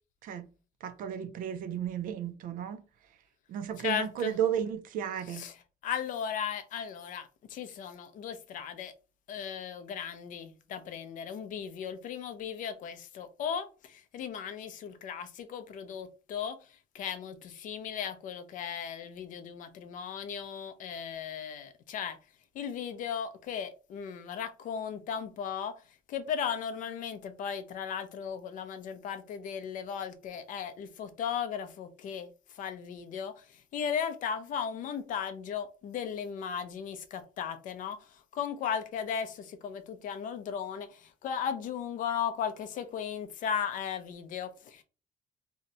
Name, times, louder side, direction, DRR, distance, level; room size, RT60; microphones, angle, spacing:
voice 1, 0.8-2.8 3.5-5.5, right 9 dB, 55° right, 0.4 m, -33 dB
voice 2, 3.8-4.3 5.3-8.9 9.3-22.2 22.5-44.8, left 7 dB, 55° left, 0.4 m, -36 dB
2.7 x 2.1 x 3.8 m
cardioid pair, 175°, 16 cm